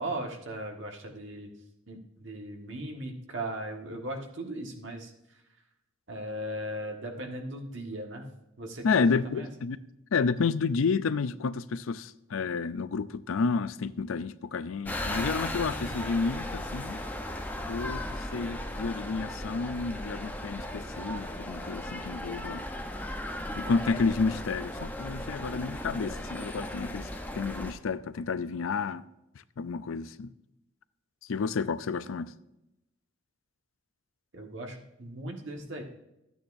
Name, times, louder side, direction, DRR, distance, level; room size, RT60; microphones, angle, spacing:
voice 1, 0.0-1.5 1.9-5.4 6.1-8.3 8.6-9.5 34.3-35.8, right 1 dB, 65° right, 1.6 m, -38 dB
voice 2, 8.8-9.8 10.1-17.0 17.7-18.0 18.3-22.6 23.6-27.1 27.3-29.0 29.6-30.3 31.3-32.3, left 4 dB, 85° left, 0.4 m, -30 dB
sound 1, 14.8-27.7, left 1 dB, 10° left, 0.8 m, -36 dB
13.0 x 9.1 x 2.6 m
head